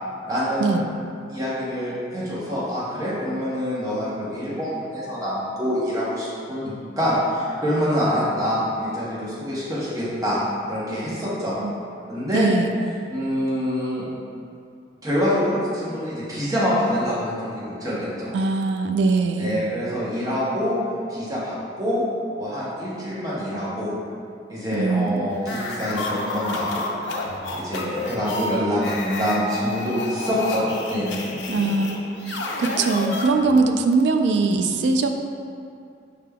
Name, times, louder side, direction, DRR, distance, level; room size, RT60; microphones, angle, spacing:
voice 1, 0.3-0.8 1.3-6.7 7.0-10.4 10.7-11.5 12.1-12.5 13.1-14.1 15.0-18.3 19.4-20.8 21.1-22.1 22.4-23.9 24.5-26.8 27.5-31.2, equal, 20° right, -9 dB, 0.9 m, -25 dB
voice 2, 12.3-12.7 18.3-19.6 24.7-25.3 31.5-35.2, right 3 dB, 80° right, 5 dB, 0.3 m, -22 dB
sound 1, 25.4-33.7, left 2 dB, 85° left, 0.5 m, -30 dB
5.7 x 3.4 x 2.2 m, 2.4 s
head